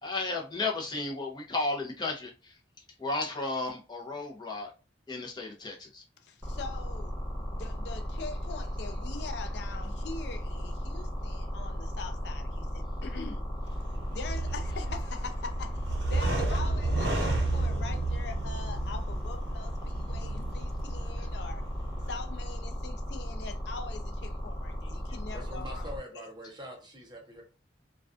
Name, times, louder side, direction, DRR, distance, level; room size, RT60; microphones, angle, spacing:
voice 1, 0.0-2.5 3.0-4.7 5.1-6.0, left 3 dB, 25° left, 0.6 m, -33 dB
voice 2, 6.2-13.5 14.1-21.6 22.1-26.3, left 4 dB, 70° left, 0.4 m, -43 dB
sound 1, 6.4-26.0, equal, 10° right, 1.0 m, -36 dB
sound 2, 13.6-22.2, right 2 dB, 70° right, 0.6 m, -32 dB
voice 3, 25.1-27.4, equal, 25° right, 0.6 m, -44 dB
2.3 x 2.2 x 2.4 m
head